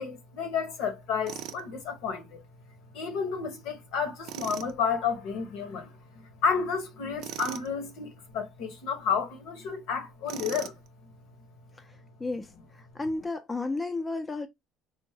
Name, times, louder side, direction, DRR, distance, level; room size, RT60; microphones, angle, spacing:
voice 1, 0.0-2.4 2.9-10.8, left 6 dB, 80° left, 0.8 m, -31 dB
Tools, 1.3-1.6 4.2-4.7 7.2-7.7 10.3-10.9, right 11 dB, 65° right, 0.4 m, -39 dB
voice 2, 12.2-14.5, left 3 dB, 15° left, 0.4 m, -33 dB
3.3 x 2.0 x 3.3 m
cardioid pair, 125°, 0 cm